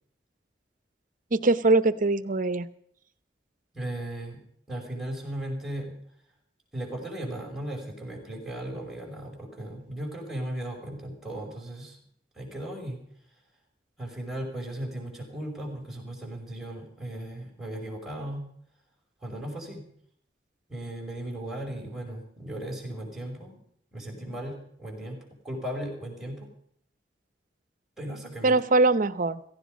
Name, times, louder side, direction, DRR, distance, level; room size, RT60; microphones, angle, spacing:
voice 1, 1.3-2.7 28.4-29.4, right 3 dB, 50° right, 14 dB, 0.8 m, -22 dB
voice 2, 3.7-6.0 6.7-12.0 12.3-13.0 14.0-18.5 19.2-19.9 20.7-23.6 23.9-26.5 28.0-28.6, right 1 dB, ahead, 1 dB, 5.5 m, -36 dB
17.0 x 15.5 x 5.2 m, 0.66 s
head